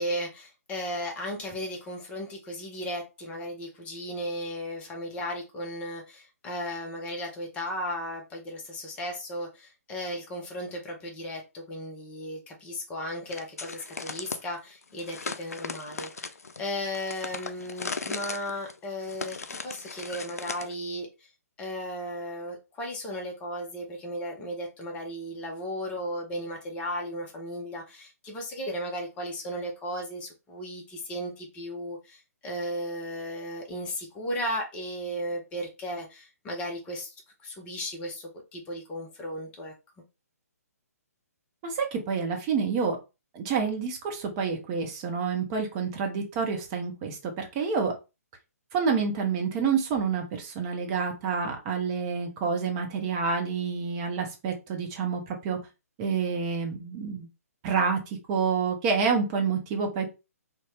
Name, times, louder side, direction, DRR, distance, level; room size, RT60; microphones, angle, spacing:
voice 1, 0.0-21.3 21.6-37.1 37.4-39.7, equal, 15° left, 1 dB, 0.6 m, -35 dB
sound 1, 13.3-14.4 15.0-20.7, left 4 dB, 65° left, 0.4 m, -37 dB
voice 2, 41.6-43.0 43.3-47.9 48.7-55.6 56.0-57.3 57.6-58.0 58.3-60.1, right 5 dB, 25° right, 3 dB, 0.7 m, -28 dB
2.6 x 2.1 x 3.2 m, 0.27 s
figure-of-eight pair, 130°, 9 cm